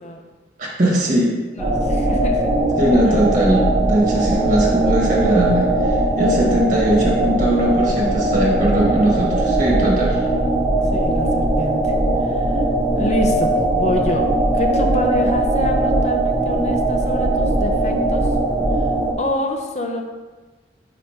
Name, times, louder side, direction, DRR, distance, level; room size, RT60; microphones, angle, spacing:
voice 1, 0.6-1.4 2.8-5.7 6.2-10.2, right 1 dB, 45° right, -3 dB, 1.5 m, -19 dB
voice 2, 1.5-2.5 3.0-3.2 6.4-6.6 10.9-12.6 12.9-18.3 19.2-20.0, left 1 dB, 40° left, 3 dB, 0.7 m, -27 dB
sound 1, 1.6-19.1, right 1 dB, 15° right, 1.0 m, -19 dB
5.0 x 4.2 x 4.5 m, 1.3 s
head